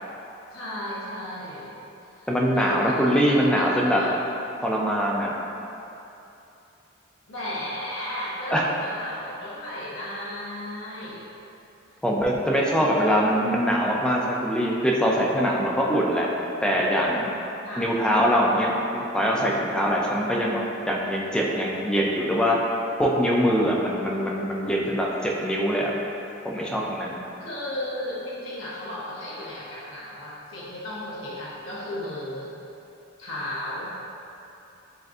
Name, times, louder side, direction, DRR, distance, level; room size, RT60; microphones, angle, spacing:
voice 1, 0.5-1.8 2.2-2.3 2.5-4.1 7.3-11.2 12.6-13.2 17.6-17.9 27.4-32.5 33.2-33.9, left 1 dB, 80° left, -8 dB, 0.8 m, -34 dB
voice 2, 2.3-4.0 4.6-5.3 8.5-8.6 12.0-16.3 16.6-17.3 17.8-20.6 20.9-22.6 23.0-25.9 26.4-27.2, equal, 5° left, -3 dB, 0.4 m, -23 dB
7.6 x 2.5 x 2.4 m, 2.9 s
head